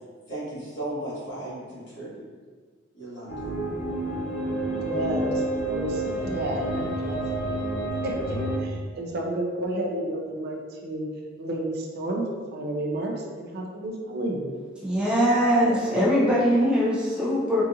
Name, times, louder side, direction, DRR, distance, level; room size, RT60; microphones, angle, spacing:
voice 1, 0.3-2.2 2.9-3.3, right 1 dB, 60° left, -9 dB, 1.4 m, -35 dB
sound 1, 3.3-8.6, right 1 dB, 75° left, 0.7 m, -29 dB
voice 2, 4.6-7.2 8.0-11.1 11.4-12.2 12.5-14.6, right 1 dB, 55° right, 0 dB, 0.5 m, -31 dB
voice 3, 14.8-17.6, equal, 5° right, -8 dB, 0.5 m, -21 dB
3.8 x 2.4 x 2.7 m, 1.5 s
head